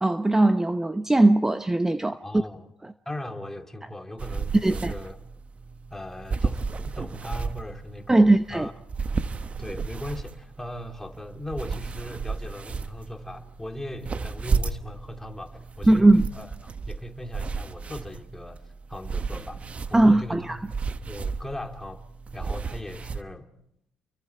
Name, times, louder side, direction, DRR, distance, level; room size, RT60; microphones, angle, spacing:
voice 1, 0.0-2.4 2.8-2.9 4.6-4.9 8.1-8.7 15.9-16.3 19.9-20.6, right 2 dB, 15° right, 0.8 m, -19 dB
voice 2, 2.1-2.7 3.1-5.2 5.9-8.7 9.6-18.6 18.9-20.6 21.0-22.0 22.3-23.5, left 1 dB, 10° left, 2.5 m, -38 dB
sound 1, 4.2-23.2, right 4 dB, 40° right, 1.2 m, -33 dB
29.5 x 23.5 x 4.7 m
supercardioid pair, 60°, 3 cm